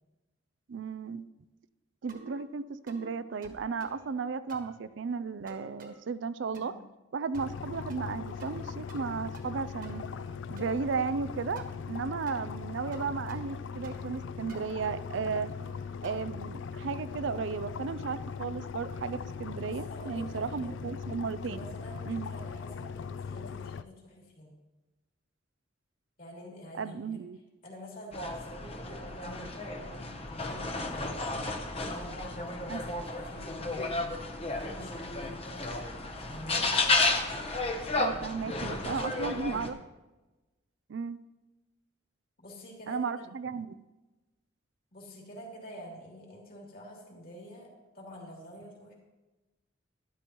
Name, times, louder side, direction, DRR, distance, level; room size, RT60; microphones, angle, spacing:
voice 1, 0.7-1.3 2.0-6.8 7.1-10.1 10.5-15.5 16.0-21.7 22.1-22.3 26.7-27.4 32.7-32.8 38.0-39.8 40.9-41.2 42.9-43.7, right 5 dB, 65° right, 13 dB, 0.4 m, -34 dB
sound 1, 2.1-2.5 2.9-3.1 3.4-4.1 4.5-4.8 5.5-6.0 6.5-6.9 7.3-7.6 7.9-8.6 8.9-9.5 9.8-10.7 11.6-11.8 12.3-12.5 12.9-13.6 13.8-14.2 14.5-16.3, right 2 dB, 45° right, 1.5 m, -51 dB
sound 2, 7.3-23.8, left 6 dB, 65° left, 0.3 m, -40 dB
voice 2, 19.7-20.9 21.3-24.5 26.2-27.0 27.6-31.2 31.7-33.9 34.5-35.7 36.2-36.7 38.5-39.6 42.4-43.0 44.9-48.9, equal, 45° left, -2 dB, 2.9 m, -47 dB
sound 3, 28.1-39.7, left 3 dB, 30° left, 0.8 m, -32 dB
12.0 x 11.5 x 3.0 m, 1.1 s
head